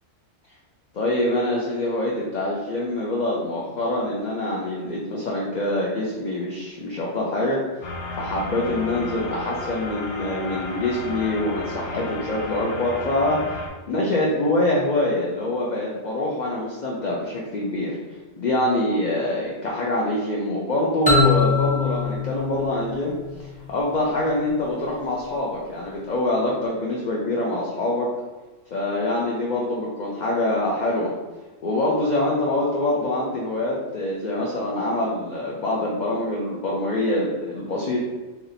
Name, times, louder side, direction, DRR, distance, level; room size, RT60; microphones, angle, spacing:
voice 1, 0.9-7.6 8.2-13.4 13.9-18.0 18.4-23.1 23.7-28.1 28.7-31.1 31.6-38.0, left 1 dB, 50° left, -4 dB, 0.5 m, -25 dB
sound 1, 7.8-13.7, left 2 dB, 75° left, 0.9 m, -33 dB
sound 2, 21.1-23.8, left 4 dB, 5° left, 0.8 m, -23 dB
3.0 x 2.7 x 4.0 m, 1.2 s
omnidirectional pair, 1.3 m